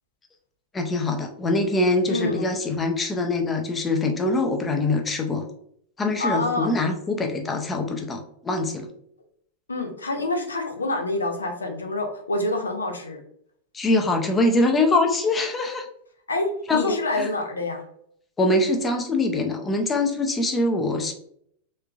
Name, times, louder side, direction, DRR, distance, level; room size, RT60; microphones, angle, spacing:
voice 1, 0.7-5.5 6.0-8.9 13.7-15.9 16.7-17.3 18.4-21.1, left 2 dB, 15° left, 3 dB, 0.6 m, -23 dB
voice 2, 2.1-2.4 6.2-6.7 9.7-13.2 16.3-17.8, left 2 dB, 75° left, 3 dB, 0.7 m, -27 dB
3.4 x 3.1 x 2.4 m, 0.67 s
figure-of-eight pair, 90°, 0 cm